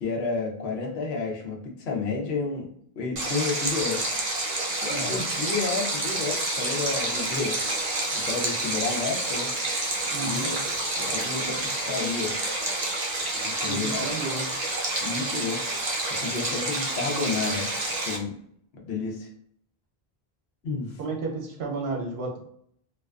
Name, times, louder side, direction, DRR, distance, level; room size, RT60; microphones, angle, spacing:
voice 1, 0.0-2.7 3.0-4.1 4.8-7.6 8.1-9.5 10.2-10.6 11.0-12.3 13.4-14.1 15.0-15.9 16.2-17.7 18.0-18.3 18.8-19.3 20.6-21.0, left 4 dB, 90° left, 0 dB, 0.9 m, -31 dB
Stream, 3.2-18.2, right 2 dB, 50° right, 0.6 m, -29 dB
voice 2, 4.9-5.2 10.0-10.5 13.6-14.5 21.0-22.4, right 3 dB, 75° right, 0 dB, 0.8 m, -32 dB
2.4 x 2.3 x 2.2 m, 0.66 s
omnidirectional pair, 1.0 m